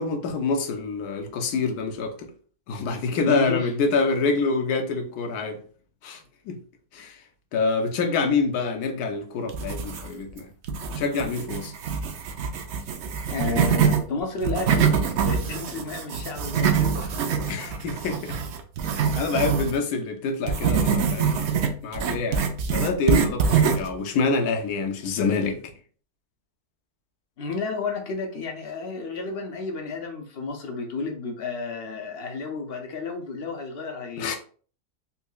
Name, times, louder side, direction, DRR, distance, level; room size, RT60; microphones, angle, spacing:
voice 1, 0.0-2.3 2.7-5.6 6.0-6.6 6.9-7.2 7.5-10.5 11.0-11.7 17.5-18.4 19.1-25.7 34.2-34.4, left 4 dB, 75° left, 1.1 m, -26 dB
voice 2, 3.3-3.7 13.3-14.9 15.2-17.3 27.4-34.4, left 4 dB, 60° left, 0.6 m, -32 dB
sound 1, 9.5-10.3 10.7-14.0 14.4-19.7 20.5-23.9, right 6 dB, 80° right, 0.6 m, -24 dB
4.1 x 2.7 x 2.2 m
omnidirectional pair, 1.7 m